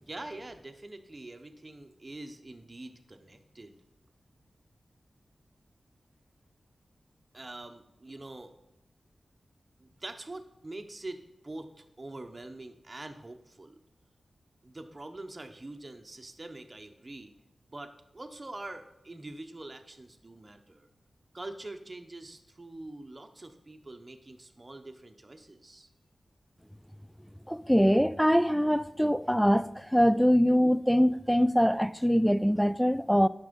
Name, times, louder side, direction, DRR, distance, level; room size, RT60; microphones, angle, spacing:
voice 1, 0.0-3.8 7.3-8.5 9.8-11.2 11.4-13.8 14.6-17.3 17.7-20.9 21.3-25.9, right 2 dB, 30° right, 1.0 m, -44 dB
voice 2, 27.5-33.3, equal, ahead, 0.3 m, -23 dB
10.5 x 6.1 x 5.3 m
wide cardioid pair, 85°, 0 cm